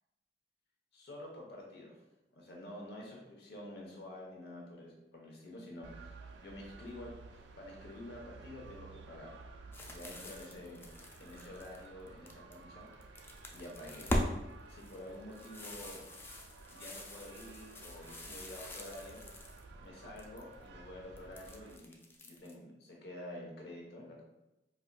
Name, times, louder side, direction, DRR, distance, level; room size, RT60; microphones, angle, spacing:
voice 1, 0.9-2.0 2.4-6.1 6.4-9.4 9.8-10.9 11.2-12.9 13.5-14.1 14.7-16.0 16.7-19.2 19.8-22.0 22.2-24.2, left 1 dB, 65° left, -2 dB, 0.9 m, -49 dB
sound 1, 5.8-21.8, right 3 dB, 70° right, 0.3 m, -54 dB
sound 2, 9.7-12.6 12.9-14.3 14.7-19.6 19.9-20.5 21.2-22.5, left 1 dB, 15° left, 0.3 m, -41 dB
4.3 x 2.5 x 2.2 m, 0.95 s
head